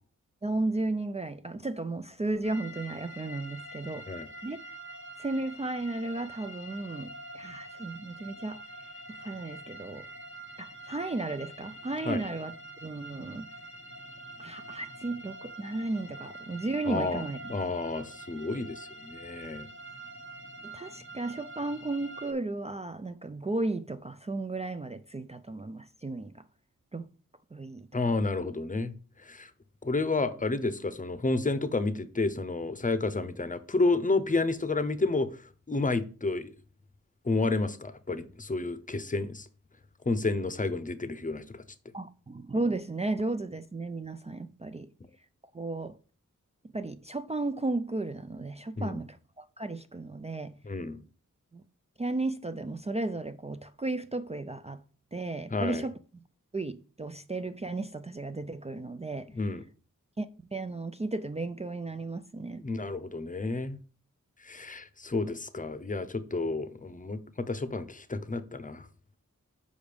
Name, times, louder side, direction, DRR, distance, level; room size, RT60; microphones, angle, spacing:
voice 1, 0.4-4.2 4.4-4.6 5.2-8.6 9.1-10.1 10.6-12.5 12.8-13.5 14.4-17.5 20.6-26.4 26.9-27.1 27.5-27.9 41.9-44.9 45.5-46.0 46.7-50.6 51.5-51.6 52.0-54.8 55.1-55.9 56.5-59.3 60.2-62.7, right 2 dB, 20° right, 0.4 m, -34 dB
sound 1, 2.4-22.3, right 1 dB, 40° right, 1.5 m, -46 dB
voice 2, 16.9-17.2 17.5-19.7 27.9-28.9 29.2-29.5 29.8-35.3 35.7-36.5 37.2-39.5 40.1-41.6 48.8-49.0 50.6-51.0 55.5-55.8 59.3-59.6 62.6-63.8 64.4-68.9, left 3 dB, 25° left, 0.7 m, -30 dB
5.1 x 5.1 x 5.1 m
cardioid pair, 45°, 32 cm